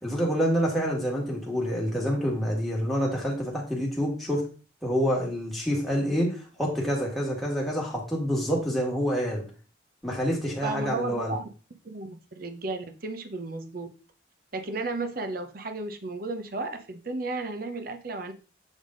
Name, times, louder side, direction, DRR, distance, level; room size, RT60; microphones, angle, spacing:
voice 1, 0.0-4.5 4.8-9.4 10.0-11.3, equal, ahead, -4 dB, 1.7 m, -27 dB
voice 2, 10.6-11.4 11.8-13.9 14.5-18.3, right 3 dB, 50° right, 7 dB, 0.7 m, -33 dB
7.3 x 3.4 x 3.8 m, 0.37 s
head